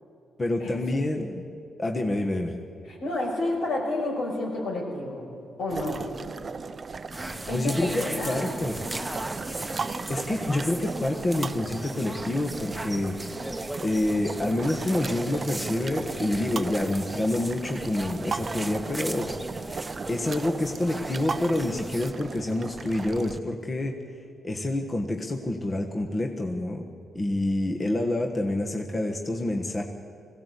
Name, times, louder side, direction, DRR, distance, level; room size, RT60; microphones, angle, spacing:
voice 1, 0.4-1.3 1.8-2.5 7.5-8.8 10.1-13.2 13.8-19.3 20.1-24.0 24.4-26.8 27.1-29.8, left 1 dB, 30° left, 2 dB, 1.5 m, -27 dB
voice 2, 2.8-5.3 5.6-6.1 7.5-8.7, left 2 dB, 80° left, -2 dB, 6.0 m, -30 dB
sound 1, 5.7-23.4, right 4 dB, 40° right, 0.7 m, -37 dB
sound 2, 7.1-22.1, right 1 dB, 10° right, 1.2 m, -37 dB
21.0 x 16.5 x 8.4 m, 2.6 s
cardioid pair, 105°, 0 cm